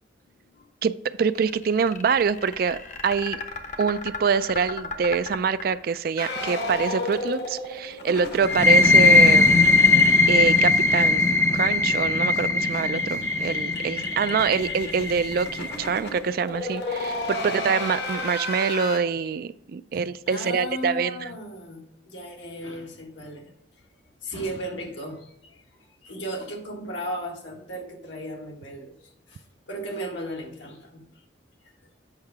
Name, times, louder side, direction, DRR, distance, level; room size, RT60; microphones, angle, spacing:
voice 1, 1.2-2.8 3.0-3.4 3.8-9.6 10.3-11.2 11.5-21.3, right 6 dB, 50° right, 15 dB, 0.3 m, -25 dB
sound 1, 1.3-6.3, left 4 dB, 40° left, 0.8 m, -36 dB
sound 2, 6.2-11.3 11.5-11.6 11.9-12.0 12.3-19.0, left 1 dB, 60° left, 1.2 m, -34 dB
sound 3, 8.4-15.9, left 3 dB, 15° left, 0.4 m, -19 dB
voice 2, 17.4-17.9 20.3-23.5 24.2-25.6 26.0-29.0 29.3-31.1, equal, 80° left, 1 dB, 1.6 m, -36 dB
8.1 x 5.7 x 3.5 m, 0.76 s
head